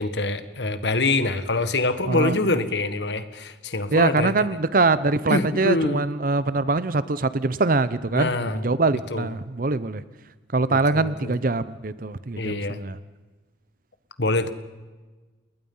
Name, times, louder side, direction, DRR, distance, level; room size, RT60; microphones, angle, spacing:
voice 1, 0.0-4.3 5.3-6.0 8.1-8.6 9.1-9.3 10.7-11.4 12.4-12.8 14.2-14.5, left 2 dB, 75° left, 11 dB, 1.6 m, -25 dB
voice 2, 2.1-2.4 3.9-10.0 10.5-13.0, right 3 dB, 50° right, 15 dB, 0.8 m, -23 dB
29.0 x 20.5 x 5.6 m, 1.3 s
head